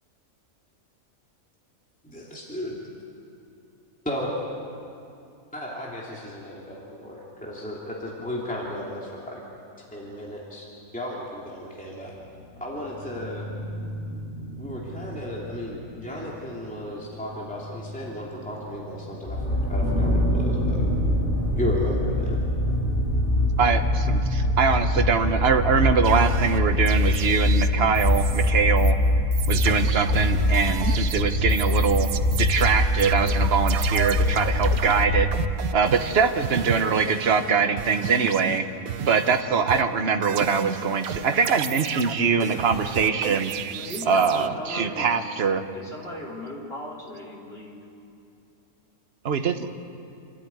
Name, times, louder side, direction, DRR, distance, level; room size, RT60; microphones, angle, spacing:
voice 1, 2.0-2.8 4.0-4.3 5.5-9.4 9.8-12.1 12.6-13.4 14.6-20.9 21.5-22.4, left 1 dB, 5° left, -4 dB, 2.9 m, -34 dB
sound 1, 11.7-24.3, right 1 dB, 10° right, 3.8 m, -36 dB
sound 2, 19.3-35.5, left 1 dB, 80° left, 6.5 m, -23 dB
voice 2, 23.6-28.9 29.5-32.1 32.4-35.3 35.7-38.7 39.0-43.5 44.1-45.6 49.2-49.6, right 5 dB, 50° right, 7 dB, 1.3 m, -23 dB
sound 3, 26.0-28.5 28.8-28.9 29.3-37.5 37.8-39.4 39.7-44.5, right 10 dB, 90° right, 1.2 m, -33 dB
voice 3, 43.8-45.1 45.7-47.8, left 1 dB, 45° left, -3 dB, 3.8 m, -37 dB
28.0 x 13.0 x 9.6 m, 2.6 s
omnidirectional pair, 1.5 m